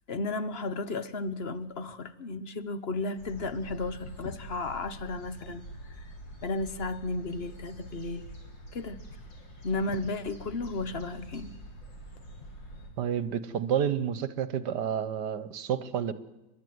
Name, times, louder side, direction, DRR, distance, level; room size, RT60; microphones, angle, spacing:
voice 1, 0.1-5.6 6.0-6.1 6.4-8.2 8.7-9.0 9.6-11.5, left 3 dB, 40° left, 13 dB, 1.1 m, -34 dB
sound 1, 3.2-12.9, right 1 dB, 90° left, 4.5 m, -46 dB
voice 2, 13.0-16.1, right 8 dB, 70° right, 15 dB, 1.6 m, -30 dB
30.0 x 12.0 x 9.5 m, 1.0 s
omnidirectional pair, 1.9 m